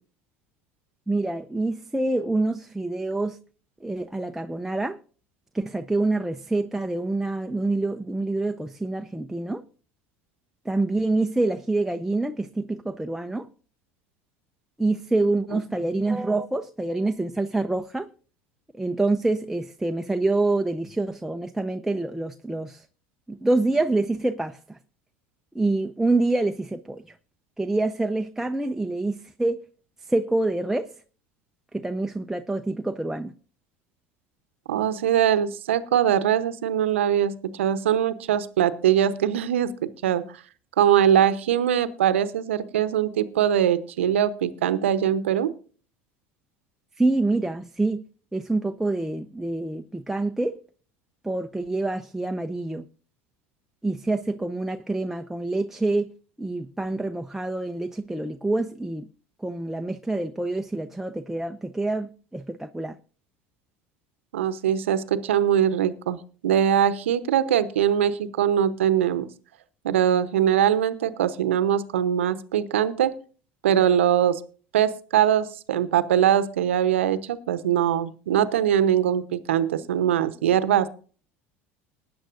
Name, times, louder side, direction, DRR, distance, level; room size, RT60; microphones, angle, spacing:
voice 1, 1.1-3.4 3.8-5.0 5.5-9.6 10.6-13.5 14.8-18.1 18.7-22.9 23.3-24.8 25.5-27.2 27.6-29.7 30.0-30.9 31.7-33.3 47.0-48.0 48.3-50.6 51.2-52.9 53.8-56.1 56.4-59.1 59.4-63.0, right 2 dB, 5° right, 0.7 m, -26 dB
voice 2, 34.7-40.4 40.8-45.5 64.3-69.3 69.8-73.1 73.6-74.4 74.7-80.9, right 10 dB, 80° right, 0.8 m, -22 dB
20.0 x 9.5 x 2.5 m
hypercardioid pair, 70°, 7 cm